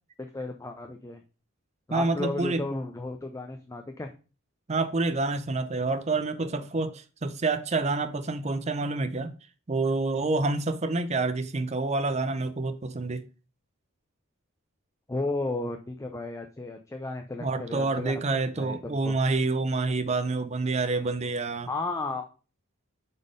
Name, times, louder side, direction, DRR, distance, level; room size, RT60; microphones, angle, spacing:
voice 1, 0.2-1.2 1.9-4.1 15.1-18.2 18.5-19.1 21.7-22.3, left 2 dB, 15° left, 0.5 m, -34 dB
voice 2, 1.9-2.6 4.7-9.3 9.7-13.2 17.4-21.7, right 3 dB, 30° right, 0.5 m, -28 dB
5.4 x 4.1 x 5.0 m
head